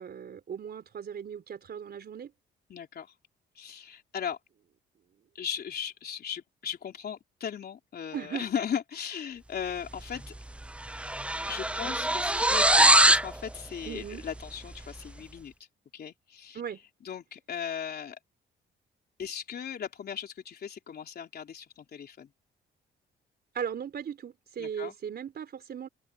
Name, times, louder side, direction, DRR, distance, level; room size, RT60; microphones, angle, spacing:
voice 1, 0.0-2.3 8.1-8.5 13.8-14.2 16.5-16.8 23.5-25.9, right 8 dB, 55° right, 4.3 m, -37 dB
voice 2, 2.7-3.1 3.6-4.4 5.4-10.3 11.5-15.5 15.9-16.6 17.0-18.2 19.2-22.3 24.6-24.9, left 8 dB, 55° left, 3.6 m, -37 dB
sound 1, 10.1-10.4 10.6-13.3, right 1 dB, 5° right, 0.6 m, -22 dB
open air
cardioid pair, 90°, 20 cm